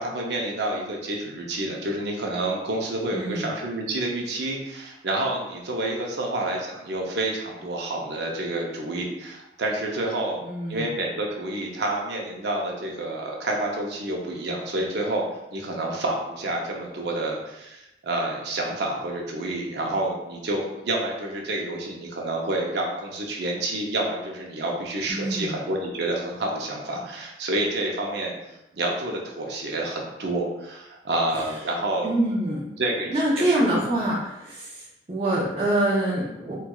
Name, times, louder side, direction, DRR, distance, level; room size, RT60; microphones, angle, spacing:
voice 1, 0.0-10.4 10.7-28.3 28.7-32.1 32.8-33.1 33.4-33.8, right 1 dB, 75° right, 0 dB, 0.6 m, -29 dB
voice 2, 3.1-3.5 10.4-10.9 25.1-25.6 32.0-32.7 33.1-36.6, right 1 dB, 35° right, -9 dB, 0.6 m, -25 dB
4.4 x 2.3 x 2.3 m, 0.91 s
head